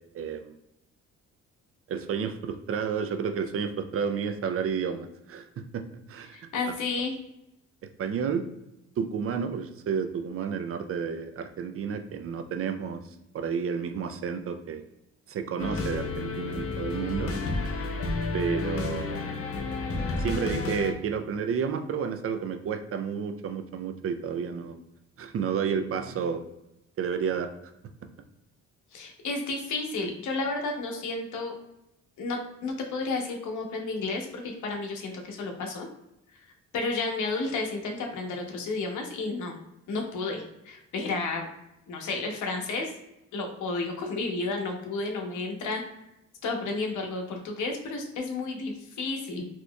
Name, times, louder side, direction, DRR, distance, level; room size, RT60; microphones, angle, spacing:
voice 1, 0.1-0.5 1.9-5.5 5.7-6.5 8.0-8.4 9.0-13.0 13.3-14.8 15.3-17.3 18.3-19.2 20.2-24.8 25.2-26.4 27.0-27.5, right 6 dB, 50° right, 8 dB, 0.4 m, -31 dB
voice 2, 6.3-7.1 28.9-31.5 32.2-35.9 36.3-36.4 36.7-39.6 39.9-41.5 41.9-42.9 43.3-45.8 46.4-49.5, left 3 dB, 75° left, 2 dB, 1.0 m, -32 dB
sound 1, 15.6-20.9, left 3 dB, 50° left, 0.6 m, -31 dB
4.2 x 3.0 x 2.2 m, 0.87 s
cardioid pair, 90°, 30 cm